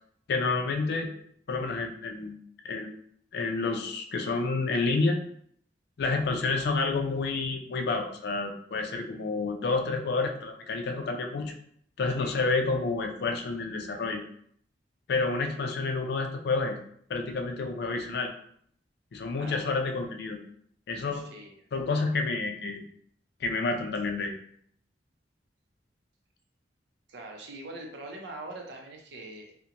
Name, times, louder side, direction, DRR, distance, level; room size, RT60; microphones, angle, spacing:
voice 1, 0.3-1.1 1.5-2.4 2.6-2.9 3.3-5.2 6.0-11.5 12.0-14.2 15.1-16.8 17.1-18.3 19.1-20.4 20.9-21.3 21.7-22.8 23.4-24.3, left 3 dB, 60° left, 4 dB, 0.4 m, -29 dB
voice 2, 21.1-21.6 27.1-29.5, right 2 dB, 65° right, 1 dB, 0.5 m, -43 dB
2.4 x 2.1 x 2.8 m, 0.64 s
head